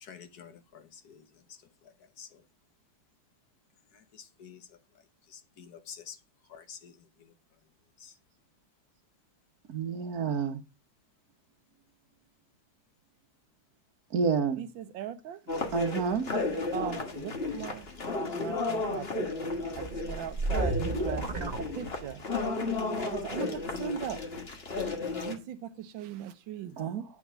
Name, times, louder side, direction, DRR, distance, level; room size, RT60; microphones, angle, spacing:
voice 1, 0.0-1.2 1.8-2.4 3.9-4.7 5.3-6.2 6.5-7.3 8.0-8.1, left 7 dB, 60° left, 1.4 m, -49 dB
voice 2, 9.7-10.6 14.1-14.6 15.7-16.3 26.8-27.0, right 6 dB, 55° right, 1.6 m, -29 dB
voice 3, 14.6-15.4 16.7-17.9 18.3-20.8 21.0-21.5 21.8-22.2 23.1-24.2 25.2-26.7, right 9 dB, 80° right, 1.6 m, -39 dB
sound 1, 15.5-25.3, left 3 dB, 30° left, 1.7 m, -33 dB
sound 2, 19.7-22.4, right 3 dB, 30° right, 0.8 m, -33 dB
9.3 x 6.1 x 6.2 m
omnidirectional pair, 2.1 m